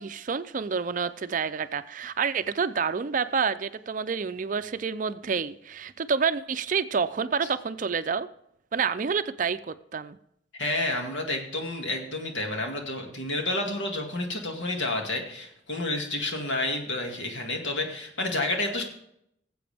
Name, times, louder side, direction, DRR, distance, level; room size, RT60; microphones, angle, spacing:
voice 1, 0.0-8.3 8.7-10.2, right 6 dB, 45° right, 12 dB, 0.4 m, -28 dB
voice 2, 10.6-18.8, left 2 dB, 75° left, 2 dB, 2.1 m, -30 dB
19.0 x 7.8 x 3.4 m, 0.75 s
head